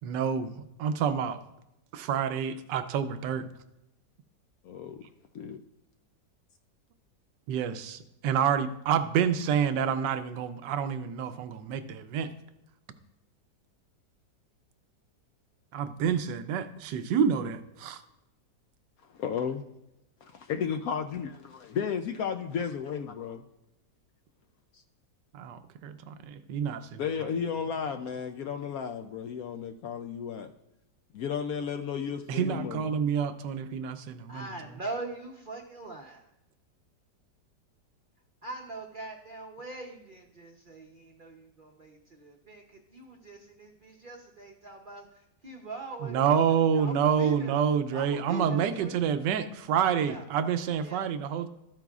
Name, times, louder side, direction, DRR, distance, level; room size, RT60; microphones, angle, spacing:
voice 1, 0.0-0.5 0.8-1.4 1.9-3.5 7.5-12.3 15.7-18.0 25.3-27.0 32.3-34.5 46.0-51.5, right 7 dB, 80° right, 11 dB, 1.3 m, -28 dB
voice 2, 4.6-5.1 5.3-5.6 19.1-19.6 20.2-23.4 24.7-24.8 27.0-30.5 31.1-32.9, left 7 dB, 70° left, 7 dB, 0.9 m, -33 dB
voice 3, 34.3-36.3 38.4-47.6 47.9-49.0 50.0-50.2 50.8-51.1, right 3 dB, 45° right, 1 dB, 0.7 m, -42 dB
13.5 x 8.9 x 2.4 m, 0.89 s
omnidirectional pair, 1.9 m